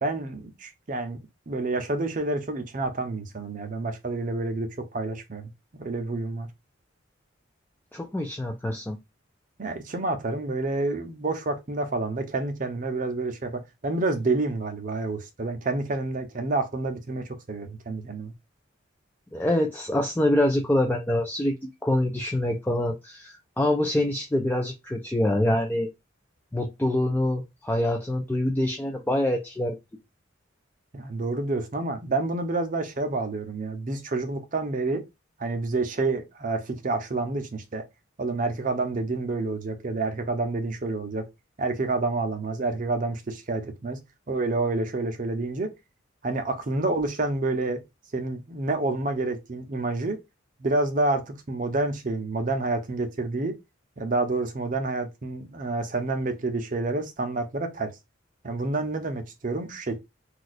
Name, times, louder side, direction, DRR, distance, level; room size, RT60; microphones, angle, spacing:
voice 1, 0.0-6.5 9.6-18.3 30.9-35.0 35.4-37.8 38.2-41.3 41.6-44.0 44.3-45.7 46.2-47.8 48.1-50.2 50.6-53.6 54.0-57.9 58.4-60.0, right 2 dB, 40° right, 0.6 m, -28 dB
voice 2, 7.9-9.0 19.3-25.9 26.5-29.7, left 1 dB, 10° left, 0.3 m, -25 dB
2.4 x 2.3 x 4.0 m
head